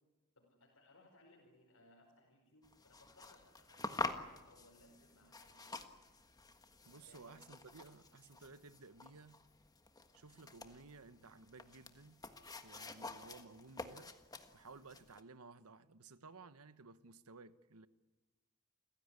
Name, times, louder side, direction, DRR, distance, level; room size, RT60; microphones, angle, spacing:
voice 1, 0.4-6.0 6.8-7.5, left 1 dB, 70° left, 5.1 m, -66 dB
sound 1, 2.6-15.2, left 3 dB, 15° left, 1.5 m, -48 dB
voice 2, 6.8-9.4 10.1-12.2 12.6-14.1 14.5-17.9, right 3 dB, 85° right, 1.1 m, -57 dB
29.0 x 16.5 x 9.7 m
head